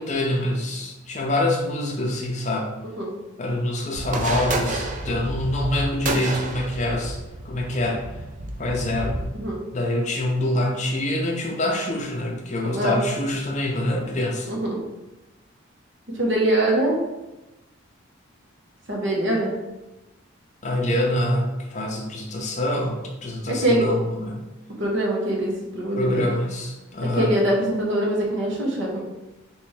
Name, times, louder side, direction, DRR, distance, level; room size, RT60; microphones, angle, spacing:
voice 1, 0.0-2.7 3.4-7.2 7.4-8.0 8.6-9.2 9.7-14.5 20.6-24.4 26.0-27.3, left 1 dB, 35° left, 0 dB, 0.5 m, -25 dB
sound 1, 4.0-9.3, right 2 dB, 35° right, 0.3 m, -30 dB
voice 2, 14.5-14.8 16.1-17.0 18.9-19.5 23.5-23.9 24.8-26.3 27.0-29.0, right 1 dB, 60° right, -1 dB, 0.9 m, -23 dB
3.4 x 3.0 x 3.2 m, 1.0 s
head